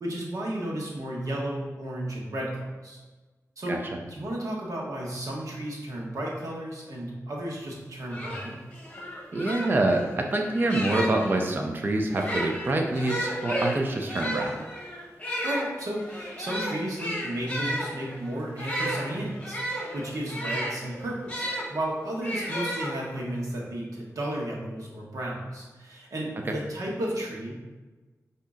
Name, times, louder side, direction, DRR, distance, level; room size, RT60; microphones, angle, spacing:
voice 1, 0.0-3.0 3.6-3.8 4.1-8.6 15.4-27.5, right 1 dB, 70° right, -3 dB, 1.2 m, -33 dB
voice 2, 3.7-4.0 9.3-14.5, right 2 dB, 35° right, 2 dB, 0.5 m, -26 dB
sound 1, 7.7-7.8 8.1-11.4 12.1-21.7 22.2-23.3, equal, 20° left, 1.3 m, -33 dB
5.2 x 2.8 x 3.6 m, 1.2 s
wide cardioid pair, 105°, 6 cm